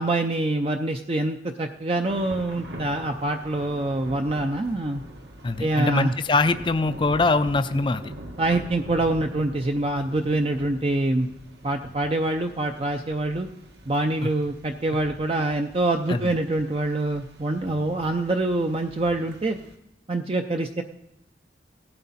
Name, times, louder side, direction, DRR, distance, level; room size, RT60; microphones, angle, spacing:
voice 1, 0.0-5.0 5.6-6.1 8.4-11.3 11.6-13.5 13.9-19.6 20.1-20.8, right 2 dB, 35° right, 5 dB, 0.5 m, -25 dB
Thunder / Rain, 2.0-19.7, equal, 75° right, 1.7 m, -43 dB
voice 2, 5.4-8.1 16.1-16.3, left 3 dB, 25° left, 10 dB, 0.4 m, -23 dB
17.0 x 12.0 x 4.2 m, 0.84 s
head